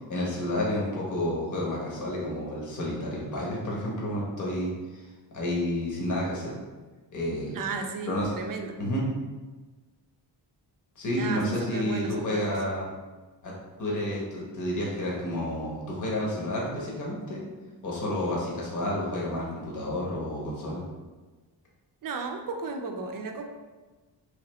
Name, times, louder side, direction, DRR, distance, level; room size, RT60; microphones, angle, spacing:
voice 1, 0.1-5.0 5.3-6.5 7.1-7.6 8.0-8.3 8.8-9.0 11.0-12.8 13.4-13.5 13.8-17.4 17.8-20.8, left 1 dB, 45° left, -4 dB, 1.0 m, -30 dB
voice 2, 7.5-8.8 11.2-12.5 22.0-23.4, right 4 dB, 50° right, 4 dB, 0.5 m, -34 dB
3.2 x 2.7 x 4.1 m, 1.3 s
wide cardioid pair, 140°, 43 cm